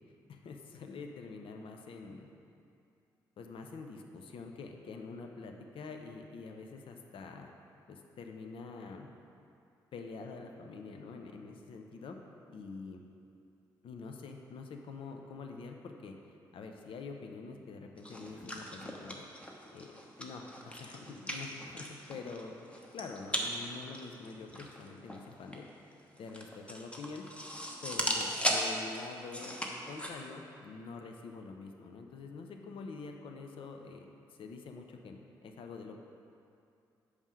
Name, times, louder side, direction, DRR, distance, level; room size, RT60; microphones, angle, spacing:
voice 1, 0.3-2.3 3.4-7.5 7.9-9.1 9.9-12.2 12.5-13.0 13.8-16.1 16.5-19.3 19.7-19.9 20.2-22.6 22.9-25.7 26.2-27.2 27.8-29.6 29.9-34.1 34.4-36.0, left 4 dB, 60° left, 3 dB, 0.6 m, -46 dB
sound 1, 18.0-30.1, equal, 10° left, 1.1 m, -38 dB
5.4 x 4.9 x 6.4 m, 2.6 s
hypercardioid pair, 40°, 10 cm